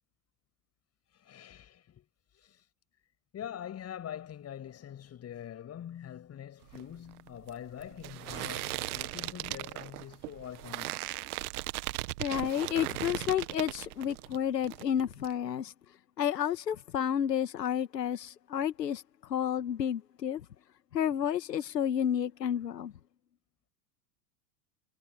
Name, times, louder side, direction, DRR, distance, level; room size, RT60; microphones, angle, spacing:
voice 1, 1.1-2.1 2.3-2.6 3.3-11.0, left 10 dB, 30° left, 7.7 m, -44 dB
sound 1, 6.6-14.4 14.6-15.3, right 19 dB, 65° right, 1.5 m, -38 dB
voice 2, 12.2-15.7 16.2-19.0 19.3-20.4 20.9-22.9, left 9 dB, 90° left, 2.1 m, -31 dB
hypercardioid pair, 105°, 48 cm